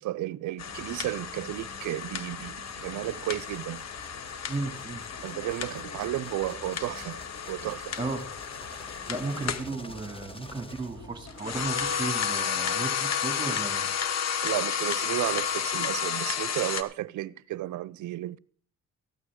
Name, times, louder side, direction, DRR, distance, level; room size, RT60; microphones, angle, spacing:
voice 1, 0.0-3.8 5.2-7.2 7.5-8.0 14.4-18.4, right 15 dB, 75° right, 0.6 m, -33 dB
sound 1, 0.6-9.7 11.3-16.8, left 7 dB, 60° left, 1.2 m, -32 dB
sound 2, 0.6-12.0, left 1 dB, 40° left, 3.2 m, -49 dB
sound 3, 2.8-11.5, left 2 dB, 20° left, 1.3 m, -51 dB
voice 2, 4.5-5.0 8.0-8.3 9.1-13.9, right 3 dB, 15° right, 2.7 m, -34 dB
15.0 x 12.5 x 3.7 m
cardioid pair, 90°, 30 cm